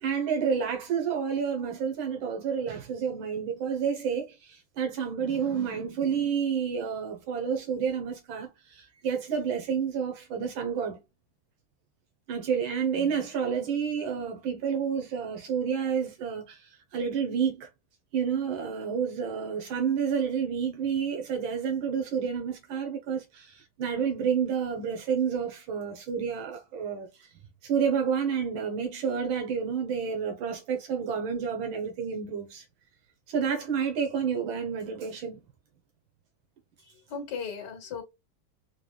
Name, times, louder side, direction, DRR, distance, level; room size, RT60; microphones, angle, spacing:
voice 1, 0.0-11.0 12.3-17.7 18.1-27.3 27.6-32.6 33.3-35.4, right 7 dB, 85° right, 1.7 m, -29 dB
voice 2, 36.8-38.0, left 6 dB, 60° left, 1.8 m, -37 dB
4.8 x 2.3 x 3.1 m
omnidirectional pair, 2.2 m